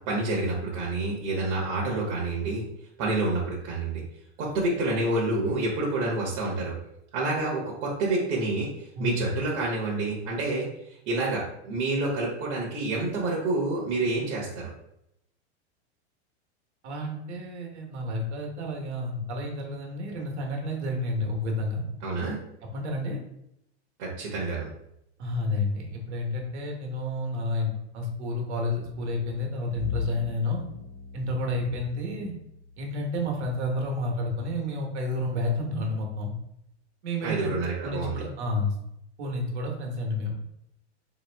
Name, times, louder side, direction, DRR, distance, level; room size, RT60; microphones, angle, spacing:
voice 1, 0.1-2.6 3.0-4.0 4.4-6.8 7.1-14.7 22.0-22.4 24.0-24.7 37.2-38.2, right 2 dB, 45° right, -4 dB, 1.0 m, -28 dB
voice 2, 8.9-9.3 16.8-21.8 22.7-23.2 25.2-30.6 31.1-32.3 32.8-36.3 37.0-37.5 37.8-38.7 39.2-40.3, left 2 dB, 75° right, 1 dB, 1.3 m, -30 dB
Bowed string instrument, 29.7-34.3, left 4 dB, 5° left, 0.6 m, -39 dB
3.5 x 3.0 x 3.4 m, 0.79 s
supercardioid pair, 145°, 34 cm